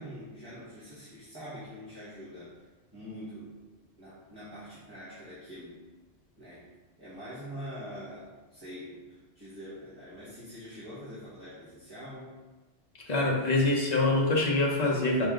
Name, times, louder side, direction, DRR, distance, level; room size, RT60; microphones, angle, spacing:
voice 1, 0.0-3.6 4.0-5.8 6.4-6.7 7.0-12.4, equal, 20° right, -11 dB, 1.1 m, -44 dB
voice 2, 13.1-15.3, left 2 dB, 40° left, -2 dB, 0.8 m, -25 dB
4.5 x 3.1 x 3.6 m, 1.2 s
omnidirectional pair, 1.2 m